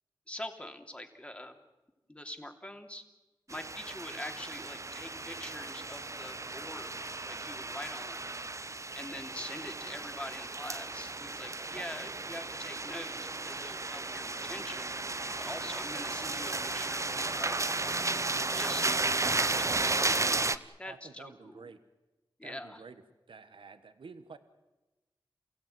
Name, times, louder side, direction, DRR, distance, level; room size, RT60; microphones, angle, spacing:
voice 1, 0.3-1.6 2.1-3.0 3.5-7.0 7.3-8.3 8.9-15.0 15.4-18.1 18.5-21.7 22.4-22.8, left 1 dB, 15° left, 5 dB, 3.0 m, -44 dB
sound 1, 3.5-20.6, right 3 dB, 35° right, 0.9 m, -34 dB
voice 2, 11.7-12.2 20.8-21.8 22.4-23.0 23.3-24.4, right 4 dB, 85° right, 10 dB, 1.3 m, -50 dB
28.5 x 16.5 x 9.2 m, 1.1 s
wide cardioid pair, 60°, 9 cm